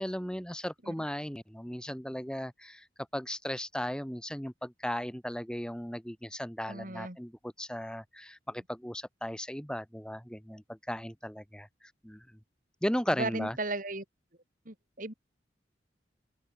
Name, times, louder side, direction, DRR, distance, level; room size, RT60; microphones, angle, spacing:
voice 1, 0.0-2.9 3.1-11.7 12.0-12.2 12.8-13.6, equal, 5° left, 1.6 m, -36 dB
voice 2, 6.7-7.2 13.1-14.0 14.7-15.1, right 2 dB, 45° right, 4.5 m, -36 dB
open air
head